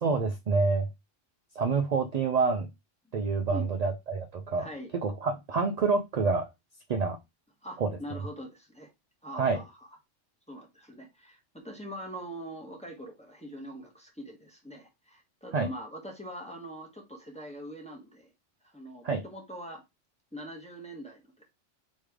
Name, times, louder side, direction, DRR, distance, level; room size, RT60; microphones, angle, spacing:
voice 1, 0.0-0.9 1.6-2.7 3.1-4.7 4.9-6.5 6.9-7.2 7.8-7.9 9.3-9.6 15.5-15.7 19.0-19.2, right 4 dB, 60° right, 0.4 m, -27 dB
voice 2, 4.6-4.9 7.6-8.9 9.2-9.9 10.5-18.3 18.6-19.8 20.3-21.5, equal, 5° left, 1.2 m, -43 dB
3.3 x 3.2 x 4.7 m
omnidirectional pair, 1.3 m